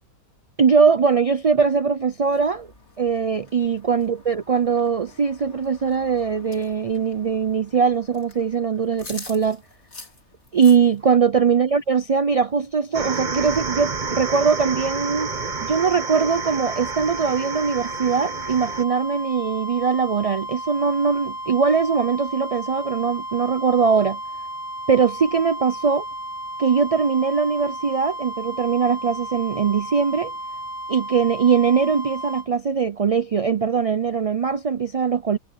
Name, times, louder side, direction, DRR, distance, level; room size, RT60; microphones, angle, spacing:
voice 1, 0.6-2.7 3.0-9.6 10.5-15.3 15.6-24.2 24.9-26.0 26.6-30.3 30.9-35.4, right 6 dB, 65° right, 0.3 m, -21 dB
sound 1, 2.2-11.2, left 3 dB, 55° left, 3.4 m, -46 dB
sound 2, 12.9-32.5, right 1 dB, 25° left, 1.8 m, -33 dB
sound 3, 12.9-18.8, right 5 dB, 35° right, 1.0 m, -31 dB
omnidirectional pair, 1.5 m